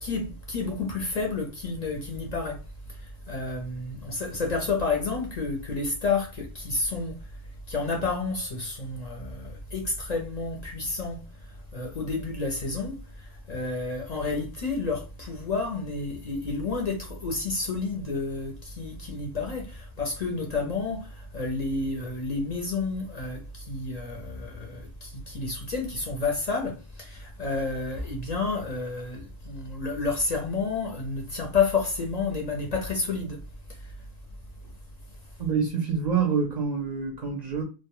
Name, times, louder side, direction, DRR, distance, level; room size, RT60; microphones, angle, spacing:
voice 1, 0.0-7.2 7.7-33.4 33.7-33.9, left 3 dB, 50° left, 0.5 m, -30 dB
voice 2, 35.4-37.6, right 6 dB, 55° right, 0.5 m, -26 dB
2.1 x 2.0 x 2.9 m
omnidirectional pair, 1.1 m